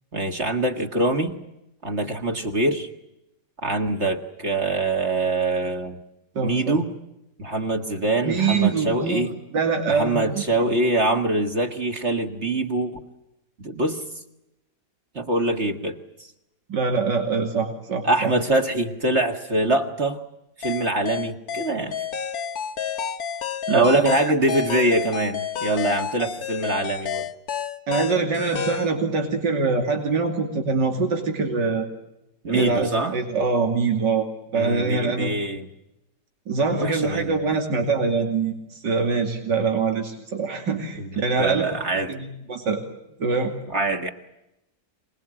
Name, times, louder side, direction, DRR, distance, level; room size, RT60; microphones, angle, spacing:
voice 1, 0.1-1.4 1.8-2.9 3.6-6.0 6.4-6.9 7.4-9.4 9.9-13.0 13.6-14.0 15.1-16.3 18.0-20.2 20.6-22.0 23.7-27.3 32.4-33.2 34.5-35.7 36.8-37.4 40.9-41.1 41.4-42.1 43.7-44.1, right 2 dB, 40° right, 4 dB, 1.9 m, -24 dB
voice 2, 6.3-6.8 8.2-9.2 9.5-10.8 16.7-18.3 23.7-24.0 27.9-31.9 32.5-34.3 34.5-35.3 36.5-41.7 42.1-42.8 43.2-43.5, right 4 dB, 90° right, 3 dB, 3.2 m, -24 dB
sound 1, 20.6-28.9, left 7 dB, 60° left, 1.7 m, -30 dB
26.0 x 20.0 x 8.8 m, 0.89 s
omnidirectional pair, 1.8 m